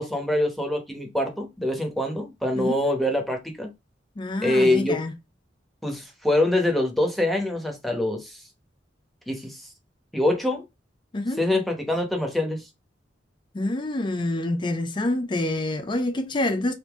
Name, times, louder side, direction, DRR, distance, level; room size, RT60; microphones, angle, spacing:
voice 1, 0.0-3.7 4.4-5.0 5.8-8.4 9.3-9.6 10.1-10.6 11.4-12.6, left 1 dB, ahead, 0.9 m, -24 dB
voice 2, 4.2-5.1 11.1-11.4 13.5-16.7, left 1 dB, 25° left, 0.4 m, -27 dB
3.6 x 2.7 x 3.4 m
head